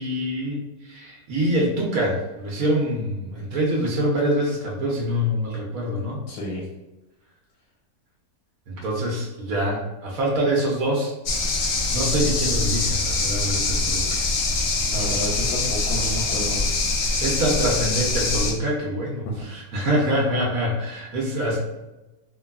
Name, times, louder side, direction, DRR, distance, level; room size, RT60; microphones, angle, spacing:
voice 1, 0.0-6.2 8.7-14.3 17.0-21.6, equal, 70° right, -3 dB, 1.1 m, -25 dB
voice 2, 6.3-6.7 14.9-16.7 19.2-19.5, equal, 85° left, -3 dB, 1.1 m, -30 dB
sound 1, 11.3-18.5, left 3 dB, 65° left, 0.9 m, -24 dB
3.2 x 2.2 x 2.3 m, 1.0 s
omnidirectional pair, 1.7 m